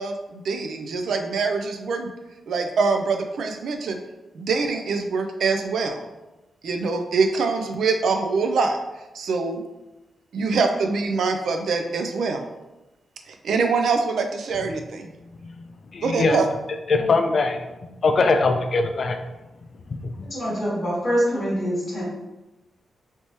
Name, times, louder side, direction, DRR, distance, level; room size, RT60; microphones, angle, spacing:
voice 1, 0.0-2.1 2.5-4.0 4.3-6.0 6.6-8.8 9.1-9.6 10.3-12.4 13.3-15.1 16.0-16.5, right 4 dB, 75° right, 5 dB, 0.4 m, -24 dB
voice 2, 15.9-16.4 16.9-17.7 18.0-19.2 20.0-20.3, left 3 dB, 45° left, 5 dB, 0.3 m, -21 dB
voice 3, 20.2-22.0, equal, 15° left, -8 dB, 1.1 m, -24 dB
3.3 x 3.0 x 2.8 m, 1.0 s
wide cardioid pair, 135°, 0 cm